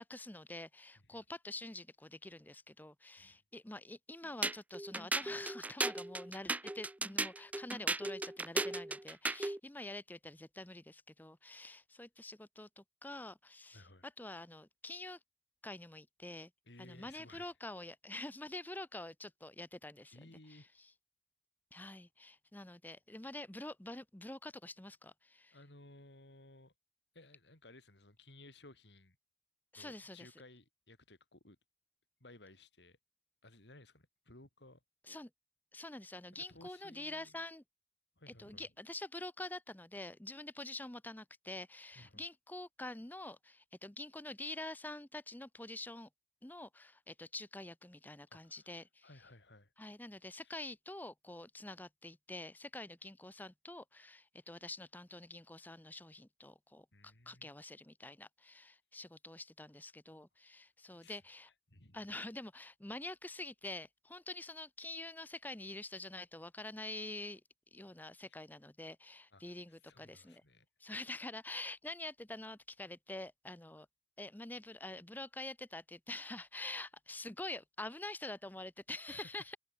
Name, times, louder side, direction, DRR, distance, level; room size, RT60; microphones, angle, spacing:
voice 1, 0.0-15.2 15.6-16.5 16.8-20.2 20.5-20.6 21.7-25.6 29.7-30.3 35.1-35.3 35.7-37.6 38.4-46.1 46.4-49.1 49.8-61.5 61.9-67.4 67.7-70.4 70.8-73.9 74.2-79.6, left 2 dB, 10° left, 0.8 m, -47 dB
sound 1, 4.4-9.6, right 2 dB, 10° right, 0.3 m, -36 dB
voice 2, 13.7-14.1 16.7-17.5 20.1-20.7 25.5-26.7 27.1-29.2 29.7-31.6 32.2-33.0 33.4-34.8 36.3-37.4 38.2-38.7 41.9-42.2 48.3-49.7 50.3-50.6 56.9-57.5 61.0-61.2 61.7-62.1 68.3-68.4 69.3-70.7 79.1-79.4, left 2 dB, 80° left, 4.6 m, -59 dB
head